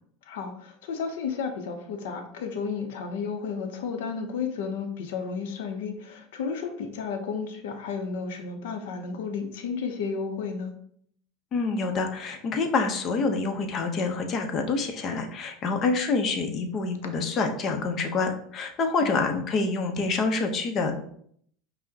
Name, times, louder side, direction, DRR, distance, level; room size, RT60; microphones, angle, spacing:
voice 1, 0.2-10.7 19.0-19.3, left 5 dB, 75° left, 6 dB, 0.6 m, -32 dB
voice 2, 11.5-20.9, left 4 dB, 40° left, 5 dB, 0.7 m, -27 dB
5.5 x 2.1 x 2.7 m, 0.63 s
supercardioid pair, 110°, 0 cm